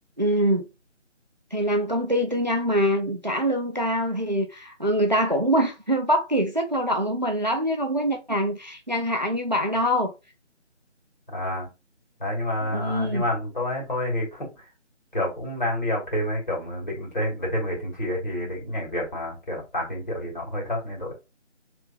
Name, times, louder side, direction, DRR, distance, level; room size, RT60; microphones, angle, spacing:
voice 1, 0.2-0.7 1.5-10.1 12.7-13.2, equal, 40° right, 0.5 m, -24 dB
voice 2, 11.3-11.7 12.2-14.5 15.1-21.1, left 1 dB, 40° left, 2.4 m, -28 dB
3.5 x 3.4 x 2.9 m
figure-of-eight pair, 165°, 36 cm